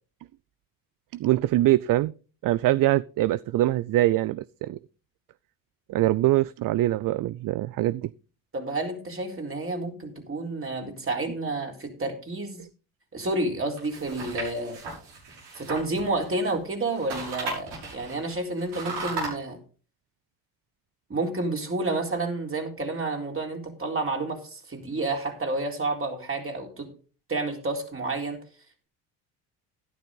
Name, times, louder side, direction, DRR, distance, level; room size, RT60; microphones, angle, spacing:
voice 1, 1.1-2.1 2.4-4.8 5.9-8.1, right 15 dB, 55° right, 0.5 m, -23 dB
voice 2, 8.5-12.7 13.1-14.8 15.6-19.6 21.1-26.9 27.3-28.4, right 2 dB, 30° right, 3.9 m, -30 dB
sound 1, 13.8-16.6 16.9-19.3, right 3 dB, 75° right, 7.0 m, -36 dB
12.0 x 11.0 x 3.8 m
supercardioid pair, 65°, 41 cm